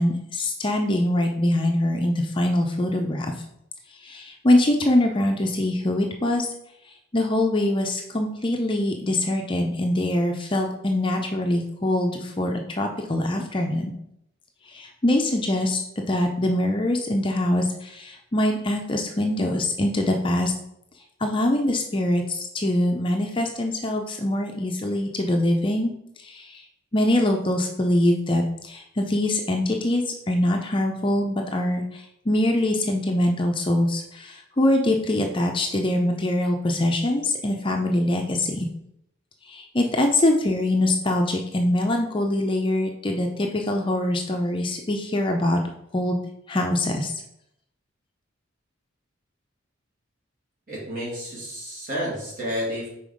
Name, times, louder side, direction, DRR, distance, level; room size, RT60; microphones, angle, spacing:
voice 1, 0.0-3.3 4.0-6.5 7.1-13.9 14.7-20.5 21.2-25.9 26.2-26.6 26.9-38.7 39.5-45.6 45.9-46.2 46.5-47.1, left 1 dB, 25° left, 3 dB, 0.5 m, -23 dB
voice 2, 50.7-52.9, equal, 45° right, -6 dB, 2.4 m, -30 dB
5.4 x 4.2 x 4.9 m, 0.78 s
head